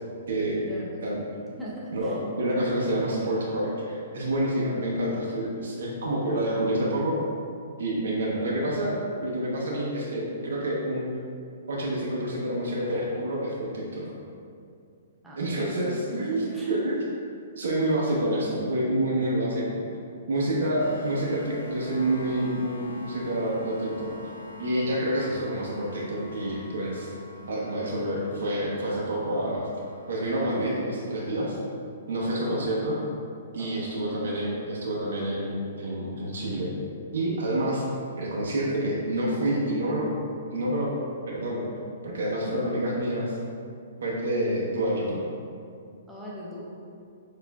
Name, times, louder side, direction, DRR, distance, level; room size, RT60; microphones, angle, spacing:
voice 1, 0.3-0.6 1.0-1.2 1.9-7.2 7.8-11.1 11.7-14.0 15.4-16.4 16.7-17.0 17.6-19.8 20.3-24.1 24.6-27.1 27.5-29.6 30.1-31.6 32.1-33.0 33.5-36.7 37.1-37.8 38.2-40.1 40.5-40.9 41.3-41.7 42.0-43.4 44.0-45.3, right 1 dB, 80° right, -5 dB, 0.8 m, -28 dB
voice 2, 1.6-2.2 15.2-15.4 15.6-16.8 20.6-20.7 32.2-32.7 33.6-33.7 34.1-34.2 42.3-42.7 46.1-46.6, equal, 5° right, -7 dB, 0.5 m, -40 dB
sound 1, 20.8-30.9, left 3 dB, 80° left, 0.4 m, -45 dB
6.4 x 2.5 x 2.3 m, 2.4 s
hypercardioid pair, 180°, 0 cm